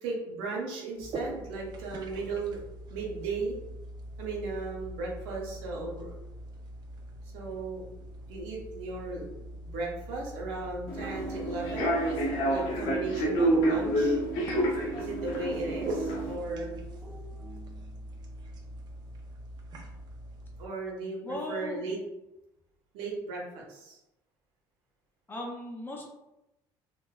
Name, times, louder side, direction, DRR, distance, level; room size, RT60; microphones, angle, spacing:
voice 1, 0.0-2.6 2.9-3.6 4.2-6.1 7.3-7.8 8.3-11.9 12.5-14.2 14.9-16.7 20.6-22.0 22.9-24.0, right 3 dB, 85° right, -2 dB, 0.8 m, -36 dB
sound 1, 1.0-20.7, right 1 dB, 50° right, 0.5 m, -43 dB
sound 2, 10.6-18.1, right 3 dB, 15° right, 0.8 m, -44 dB
Human voice / Subway metro underground, 10.9-16.3, right 1 dB, 75° left, 0.7 m, -28 dB
voice 2, 21.2-21.9 25.3-26.0, left 1 dB, 20° left, 0 dB, 0.6 m, -37 dB
3.0 x 2.1 x 2.3 m, 0.92 s
supercardioid pair, 100°, 9 cm